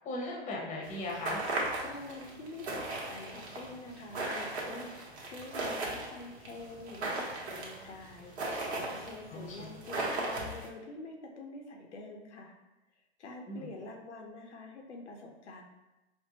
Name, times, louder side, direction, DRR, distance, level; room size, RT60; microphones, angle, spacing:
voice 1, 0.0-1.4 9.3-9.7 13.5-13.7, left 1 dB, 20° left, -1 dB, 0.7 m, -38 dB
sound 1, 0.8-10.7, right 2 dB, 70° right, 1.0 m, -37 dB
voice 2, 1.8-8.3 8.8-12.5 13.2-15.6, left 2 dB, 85° left, 1 dB, 0.7 m, -46 dB
4.3 x 2.0 x 2.7 m, 1.0 s
hypercardioid pair, 110°, 33 cm